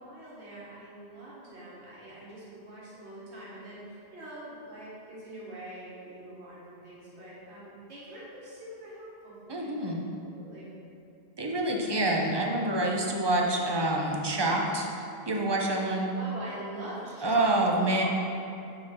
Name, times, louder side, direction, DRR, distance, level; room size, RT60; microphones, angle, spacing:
voice 1, 0.0-9.9 10.3-10.7 16.0-17.5 17.8-18.0, right 1 dB, 90° right, -8 dB, 1.8 m, -44 dB
voice 2, 9.5-10.1 11.4-14.9 15.3-16.1 17.2-18.0, right 1 dB, 30° right, -1 dB, 0.6 m, -27 dB
7.7 x 4.3 x 4.2 m, 2.6 s
omnidirectional pair, 1.1 m